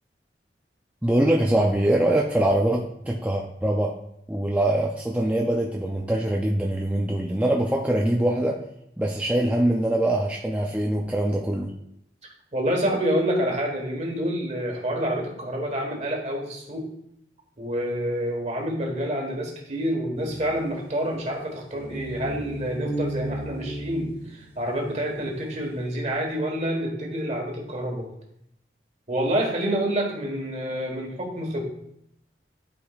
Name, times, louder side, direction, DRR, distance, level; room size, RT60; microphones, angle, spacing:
voice 1, 1.0-3.9 4.3-8.6 9.0-11.7, right 1 dB, 10° right, -2 dB, 0.4 m, -23 dB
voice 2, 12.5-16.9 17.6-28.1 29.1-31.6, equal, 40° right, 1 dB, 1.4 m, -28 dB
sound 1, 20.2-25.4, right 1 dB, 35° left, 0.9 m, -35 dB
11.5 x 4.9 x 2.4 m, 0.77 s
head